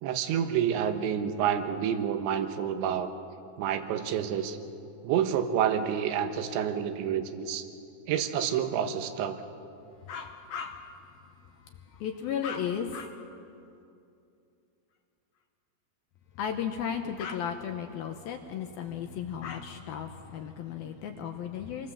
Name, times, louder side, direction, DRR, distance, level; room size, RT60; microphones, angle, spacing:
voice 1, 0.0-3.1 3.6-4.6 5.0-7.6 8.1-9.4, right 9 dB, 80° right, 8 dB, 3.4 m, -28 dB
voice 2, 10.1-10.8 11.9-13.1 16.4-21.9, left 8 dB, 75° left, 5 dB, 2.3 m, -35 dB
27.5 x 21.5 x 7.1 m, 2.6 s
omnidirectional pair, 5.3 m